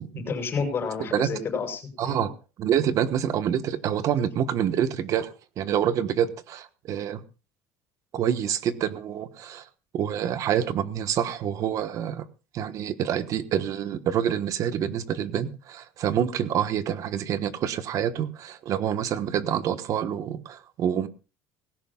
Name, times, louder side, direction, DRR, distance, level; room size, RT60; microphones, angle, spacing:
voice 1, 0.2-2.3 5.9-6.1, left 5 dB, 30° left, 3 dB, 5.9 m, -31 dB
voice 2, 2.0-2.3 2.6-5.3 5.6-7.2 8.1-9.6 9.9-12.2 12.5-21.1, right 9 dB, 45° right, 12 dB, 1.2 m, -27 dB
18.5 x 16.5 x 2.4 m, 0.31 s
cardioid pair, 145°, 8 cm